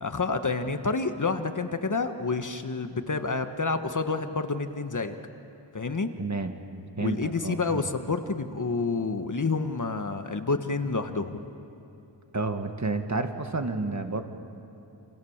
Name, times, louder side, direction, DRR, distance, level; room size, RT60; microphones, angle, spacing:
voice 1, 0.0-5.2 5.7-6.1 7.0-11.5, left 4 dB, 40° left, 8 dB, 1.5 m, -29 dB
voice 2, 6.2-6.5 7.0-7.9 12.3-14.2, right 3 dB, 40° right, 6 dB, 1.9 m, -30 dB
28.5 x 28.0 x 7.4 m, 2.9 s
wide cardioid pair, 85°, 45 cm